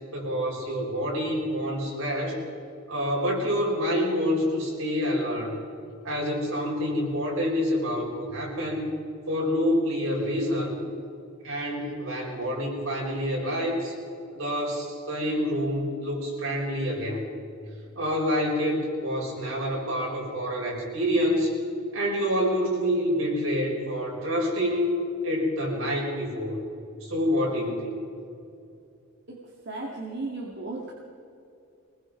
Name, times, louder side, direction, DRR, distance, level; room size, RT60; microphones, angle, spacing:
voice 1, 0.1-2.4 2.9-5.6 6.0-8.9 9.3-10.7 11.4-13.9 14.3-17.3 18.0-21.6 21.9-25.0 25.2-26.6 27.0-28.0, equal, 65° right, -2 dB, 5.9 m, -27 dB
voice 2, 29.7-30.9, right 2 dB, 50° right, -2 dB, 2.3 m, -35 dB
24.5 x 20.0 x 5.3 m, 2.6 s
head